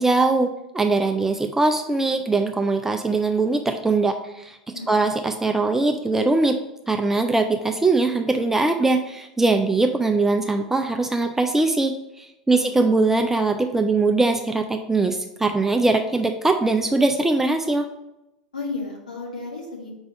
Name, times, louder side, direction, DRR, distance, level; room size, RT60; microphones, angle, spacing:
voice 1, 0.0-4.6 4.9-6.6 6.9-17.9, right 3 dB, 10° right, 4 dB, 0.4 m, -21 dB
voice 2, 4.7-5.1 12.5-12.8 18.5-19.9, left 3 dB, 75° left, -3 dB, 1.7 m, -34 dB
5.3 x 3.4 x 5.5 m, 0.89 s
figure-of-eight pair, 85°, 4 cm